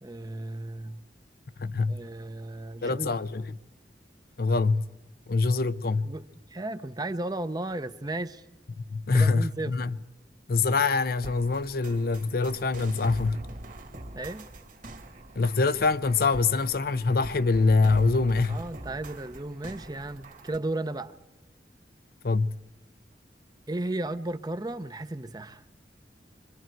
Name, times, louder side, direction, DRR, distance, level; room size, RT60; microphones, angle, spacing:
voice 1, 0.0-1.0 1.9-3.1 6.0-6.2 6.5-8.4 9.1-9.7 14.1-14.5 18.5-21.2 23.7-25.6, right 2 dB, 20° right, 0.7 m, -34 dB
voice 2, 1.6-2.0 2.8-3.6 4.4-4.8 5.3-6.1 8.9-10.0 10.5-13.4 15.4-18.6 22.2-22.6, left 4 dB, 60° left, 0.6 m, -24 dB
sound 1, 11.2-20.6, right 1 dB, 50° right, 1.9 m, -43 dB
25.0 x 24.0 x 4.6 m
head